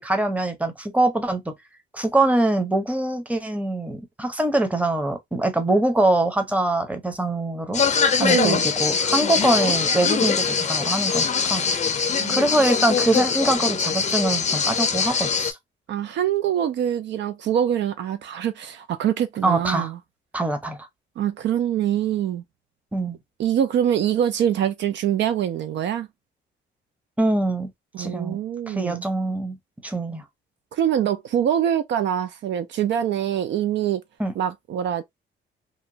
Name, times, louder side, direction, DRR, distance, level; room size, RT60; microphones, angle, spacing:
voice 1, 0.0-1.5 1.9-7.8 8.2-11.8 12.3-15.6 19.4-19.9 20.3-20.9 22.9-23.2 27.2-27.7 28.0-28.4 28.7-29.6 29.8-30.2 34.2-34.3, right 2 dB, 5° right, 0.8 m, -23 dB
sound 1, 7.7-15.5, left 5 dB, 35° left, 0.5 m, -22 dB
voice 2, 8.2-8.6 12.1-12.5 15.9-20.0 21.2-22.4 23.4-26.1 27.9-29.0 30.7-34.0 34.4-35.0, right 10 dB, 65° right, 0.4 m, -24 dB
2.9 x 2.2 x 2.6 m
cardioid pair, 90°, 20 cm